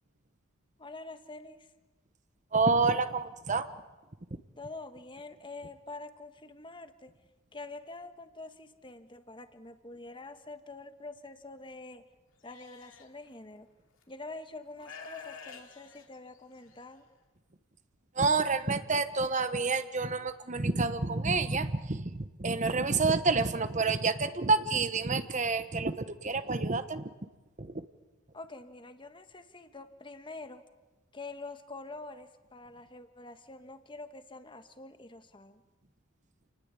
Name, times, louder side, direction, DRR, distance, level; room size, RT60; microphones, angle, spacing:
voice 1, 0.8-1.7 4.6-7.1 7.5-12.0 12.4-13.7 14.1-17.1 28.3-30.6 31.1-35.6, left 2 dB, 25° left, 9 dB, 1.5 m, -46 dB
voice 2, 2.5-3.7 18.2-27.0 27.6-27.7, right 4 dB, 35° right, 11 dB, 1.1 m, -28 dB
Livestock farm animals working animals, 12.5-13.1 14.0-14.1 14.8-16.8, left 5 dB, 65° left, 2.8 m, -48 dB
29.0 x 19.5 x 8.4 m, 1.2 s
head